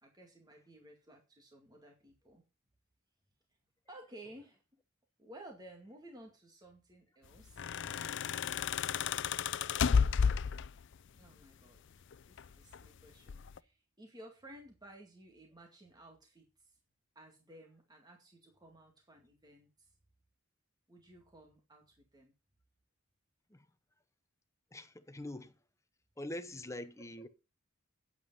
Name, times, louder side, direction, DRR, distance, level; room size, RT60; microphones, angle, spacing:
voice 1, 0.0-2.4 3.9-4.6 5.2-7.8 11.1-12.0 12.2-16.8 17.2-20.0 20.9-22.3, right 1 dB, 20° right, 2.1 m, -56 dB
sound 1, 7.4-11.0 12.1-12.9 13.3-13.6, left 6 dB, 60° left, 0.5 m, -32 dB
voice 2, 24.7-25.5 26.2-27.3, left 1 dB, 15° left, 0.8 m, -44 dB
9.4 x 8.4 x 5.5 m
head